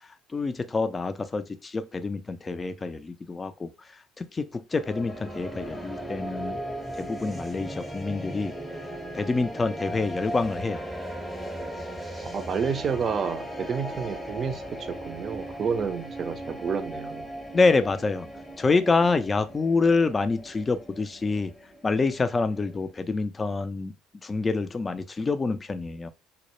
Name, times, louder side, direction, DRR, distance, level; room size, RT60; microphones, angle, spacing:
voice 1, 0.3-3.7 4.2-6.6 7.0-8.5 9.1-10.8 17.5-18.3 18.6-21.5 21.8-23.9 24.2-26.1, left 3 dB, 25° left, 0.3 m, -26 dB
sound 1, 4.7-22.9, right 1 dB, 5° left, 0.7 m, -38 dB
voice 2, 12.3-14.6 14.9-17.3, right 6 dB, 40° right, 0.4 m, -29 dB
2.1 x 2.0 x 2.9 m
hypercardioid pair, 65°, 0 cm